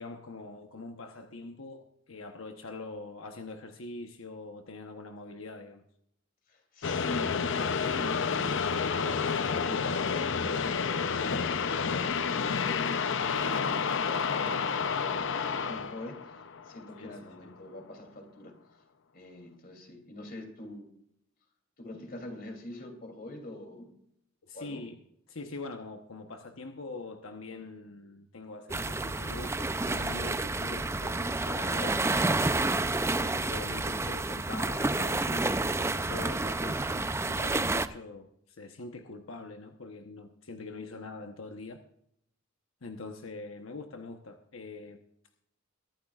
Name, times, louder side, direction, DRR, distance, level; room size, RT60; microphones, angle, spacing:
voice 1, 0.0-5.8 13.4-13.7 17.0-17.5 24.4-25.0 25.3-32.8 33.2-41.8 42.8-45.0, left 3 dB, 90° left, 5 dB, 1.0 m, -43 dB
voice 2, 6.5-10.6 11.0-12.9 13.3-16.4 16.6-18.5 19.1-20.9 21.8-23.9 24.5-24.8, left 1 dB, 45° left, 3 dB, 3.0 m, -44 dB
sound 1, 6.8-17.1, left 6 dB, 65° left, 0.7 m, -30 dB
sound 2, 28.7-37.9, right 2 dB, 15° right, 0.5 m, -29 dB
22.5 x 12.0 x 2.4 m, 0.72 s
head